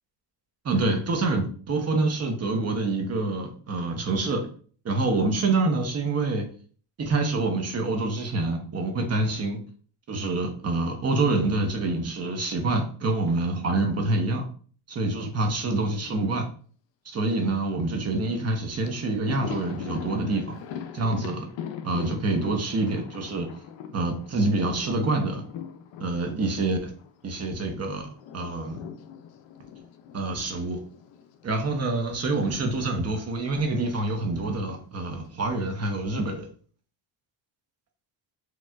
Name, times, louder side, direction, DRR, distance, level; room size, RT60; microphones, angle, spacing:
voice 1, 0.6-4.5 4.8-6.5 7.0-9.6 10.1-14.4 14.9-16.5 17.0-20.6 20.9-21.5 21.8-23.5 23.9-25.4 26.0-26.9 27.2-28.1 28.3-28.8 30.1-30.8 31.4-36.5, right 2 dB, 30° right, 3 dB, 0.7 m, -26 dB
Thunder, 18.5-18.6 18.8-27.7 27.9-32.2 32.5-32.7 33.8-34.5, left 8 dB, 65° left, 0.5 m, -41 dB
4.4 x 2.3 x 2.3 m, 0.44 s
cardioid pair, 135°, 48 cm